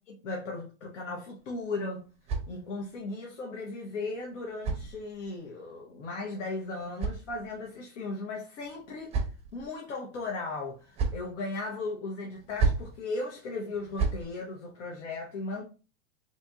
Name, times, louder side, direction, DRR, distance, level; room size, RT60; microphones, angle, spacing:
voice 1, 0.1-2.1 2.5-9.2 9.5-15.6, left 3 dB, 75° left, 1.0 m, -37 dB
sound 1, 1.4-3.0 4.0-5.5 6.5-7.8 8.6-9.7 10.6-11.3 12.3-13.0 13.7-14.3, right 4 dB, 15° right, 0.5 m, -34 dB
4.2 x 2.9 x 2.3 m
hypercardioid pair, 130°, 37 cm